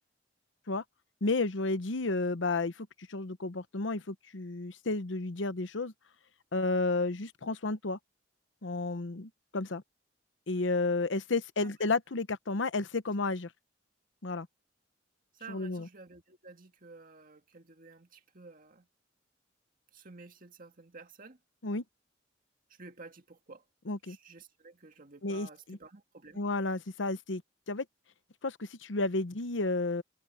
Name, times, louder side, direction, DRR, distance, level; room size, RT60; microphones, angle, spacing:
voice 1, 1.2-5.9 6.5-8.0 8.6-9.8 10.5-13.5 14.2-14.5 15.5-15.9 21.6-21.8 23.9-24.2 25.2-25.8 26.4-27.4 27.7-27.8 28.4-30.0, left 3 dB, 75° left, 0.9 m, -32 dB
voice 2, 11.6-11.9 15.3-18.9 19.9-21.4 22.7-23.7 24.0-26.4, right 4 dB, 45° right, 2.0 m, -52 dB
head